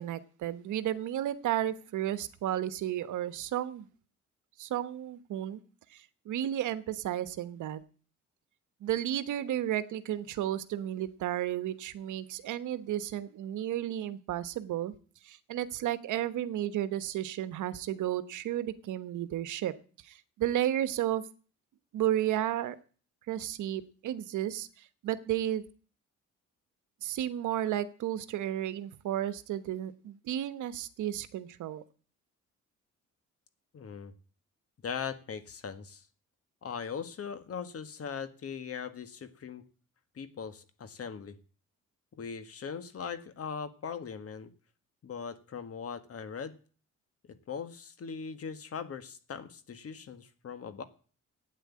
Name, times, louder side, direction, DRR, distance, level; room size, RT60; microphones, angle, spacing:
voice 1, 0.0-3.9 4.6-5.6 5.9-7.8 8.8-14.9 15.2-19.7 20.0-21.2 21.9-22.8 23.3-25.6 27.0-31.8, right 12 dB, 80° right, 13 dB, 1.1 m, -33 dB
voice 2, 33.7-34.1 34.8-36.0 36.6-39.6 40.1-41.4 42.1-44.5 45.0-46.6 47.5-50.8, left 6 dB, 50° left, 11 dB, 1.7 m, -40 dB
12.0 x 9.4 x 8.7 m, 0.40 s
cardioid pair, 90°, 30 cm